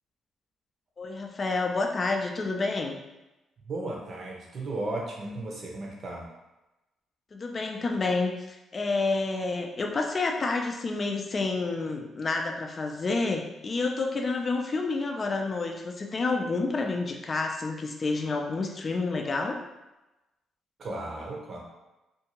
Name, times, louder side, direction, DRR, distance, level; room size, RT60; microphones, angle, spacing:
voice 1, 1.0-3.0 7.3-19.6, left 3 dB, 35° left, 3 dB, 0.4 m, -29 dB
voice 2, 3.6-6.3 20.8-21.6, right 2 dB, 50° right, -2 dB, 0.8 m, -35 dB
2.6 x 2.3 x 3.0 m, 1.0 s
cardioid pair, 90°, 0 cm